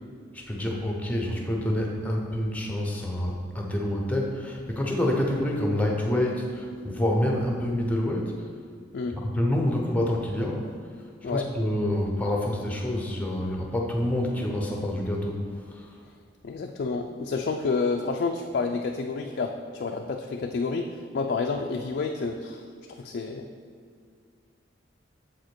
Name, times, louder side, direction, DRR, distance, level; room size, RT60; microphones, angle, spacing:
voice 1, 0.3-8.3 9.1-10.6 11.2-15.4 15.7-15.9, left 1 dB, 10° left, 0 dB, 0.8 m, -27 dB
voice 2, 16.4-22.6 23.0-23.5, left 4 dB, 55° left, 3 dB, 0.4 m, -29 dB
7.2 x 4.9 x 4.5 m, 2.1 s
head